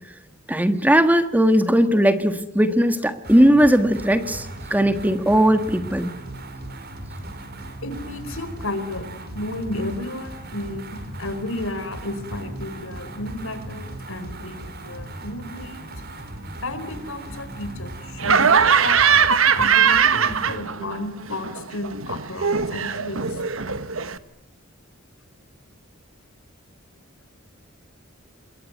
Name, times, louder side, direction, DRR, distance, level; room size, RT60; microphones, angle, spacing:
voice 1, 0.5-6.2, equal, 10° right, 10 dB, 1.5 m, -18 dB
sound 1, 3.2-20.6, right 1 dB, 50° right, 5.0 m, -37 dB
voice 2, 7.8-15.8 16.6-19.0 19.5-23.4, left 2 dB, 75° left, 11 dB, 4.6 m, -33 dB
Laughter, 18.2-21.0 21.3-24.2, right 6 dB, 75° right, 1.4 m, -20 dB
28.0 x 22.0 x 9.3 m, 0.76 s
head